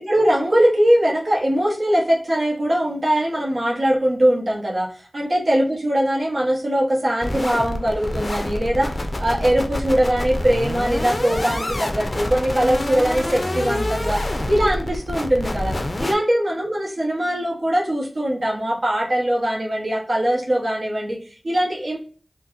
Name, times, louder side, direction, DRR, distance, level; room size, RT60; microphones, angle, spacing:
voice 1, 0.1-22.0, right 1 dB, 65° right, -3 dB, 1.0 m, -21 dB
sound 1, 7.2-16.1, left 1 dB, 50° left, 0.5 m, -26 dB
3.7 x 2.1 x 2.6 m, 0.40 s
wide cardioid pair, 55°, 0 cm